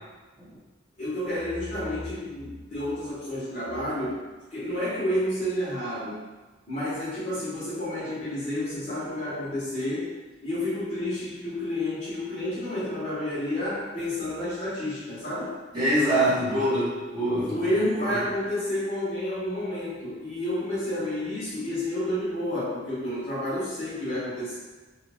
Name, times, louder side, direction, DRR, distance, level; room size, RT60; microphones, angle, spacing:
voice 1, 1.0-6.2 6.7-10.1 10.4-15.6 17.5-24.6, left 1 dB, 40° left, -11 dB, 1.1 m, -30 dB
voice 2, 15.7-17.5 18.1-18.2, right 1 dB, 20° right, -11 dB, 1.1 m, -24 dB
3.2 x 2.3 x 3.4 m, 1.2 s
head